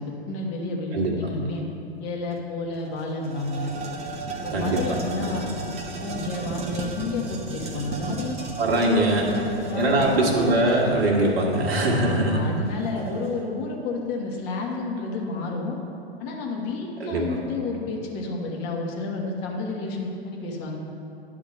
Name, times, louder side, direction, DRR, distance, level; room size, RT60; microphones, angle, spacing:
voice 1, 0.0-1.6 2.0-3.7 4.3-5.5 6.0-8.4 8.8-10.2 11.9-15.7 16.2-20.8, left 3 dB, 35° left, -1 dB, 1.4 m, -30 dB
voice 2, 0.9-1.3 4.5-4.8 8.6-9.3 9.7-12.4 17.0-17.4, right 1 dB, 65° right, -2 dB, 1.6 m, -22 dB
sound 1, 2.3-2.4 2.7-13.4, right 3 dB, 20° right, 0.9 m, -35 dB
10.5 x 3.6 x 6.5 m, 2.7 s
figure-of-eight pair, 105°, 32 cm